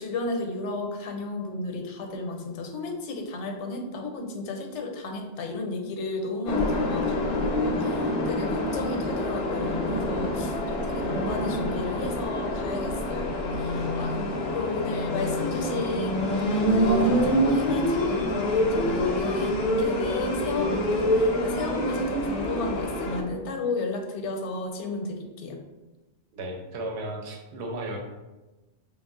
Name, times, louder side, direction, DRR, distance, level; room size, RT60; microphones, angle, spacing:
voice 1, 0.0-25.6, left 2 dB, 85° left, 3 dB, 0.9 m, -33 dB
sound 1, 6.5-23.2, left 1 dB, 60° left, 0.5 m, -26 dB
voice 2, 26.3-28.0, right 1 dB, 70° right, 2 dB, 0.9 m, -34 dB
2.9 x 2.3 x 3.6 m, 1.1 s
omnidirectional pair, 1.2 m